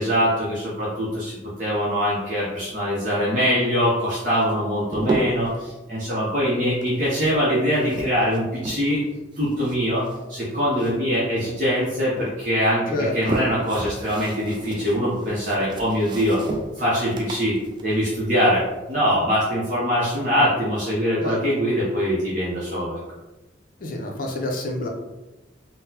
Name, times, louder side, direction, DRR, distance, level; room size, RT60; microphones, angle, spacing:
voice 1, 0.0-9.0 9.4-16.4 16.8-17.5 17.8-23.0, equal, 40° right, -8 dB, 0.7 m, -23 dB
sound 1, 4.3-5.6 6.7-9.1 9.3-11.2 11.5-12.3 12.9-18.9, right 1 dB, 25° right, 0.3 m, -33 dB
voice 2, 12.9-13.4 21.2-21.5 23.8-24.9, left 1 dB, 45° left, 1 dB, 0.5 m, -28 dB
3.8 x 2.0 x 2.8 m, 1.1 s
head